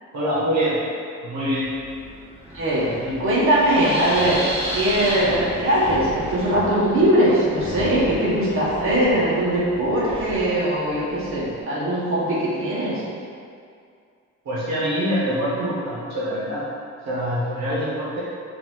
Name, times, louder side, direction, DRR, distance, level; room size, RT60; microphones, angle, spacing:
voice 1, 0.1-0.8 1.2-1.7 2.9-3.2 14.4-16.6 17.1-18.2, equal, 65° right, -8 dB, 1.3 m, -25 dB
Wind, 1.5-11.6, equal, 20° right, 1.2 m, -34 dB
voice 2, 2.5-2.9 3.2-4.4 4.7-13.0, right 1 dB, 45° right, -8 dB, 1.3 m, -20 dB
4.8 x 2.9 x 3.8 m, 2.3 s
cardioid pair, 90°, 30 cm